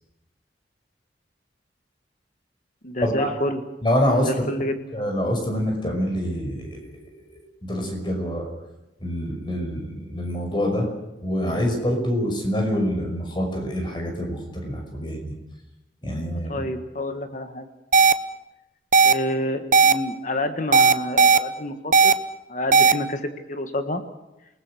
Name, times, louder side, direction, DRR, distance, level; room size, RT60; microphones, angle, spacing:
voice 1, 2.8-3.6 4.1-4.8 16.5-17.7 19.0-22.2 22.5-24.0, left 1 dB, 40° left, 8 dB, 1.7 m, -28 dB
voice 2, 3.8-4.3 4.9-7.0 7.6-8.5 9.0-10.9 11.2-15.3 16.0-16.6, equal, 25° left, 3 dB, 5.8 m, -26 dB
sound 1, 17.9-18.1 18.9-19.1 19.7-19.9 20.7-21.4 21.9-22.1 22.7-22.9, right 4 dB, 45° right, 0.9 m, -14 dB
28.0 x 19.5 x 6.4 m, 0.95 s
head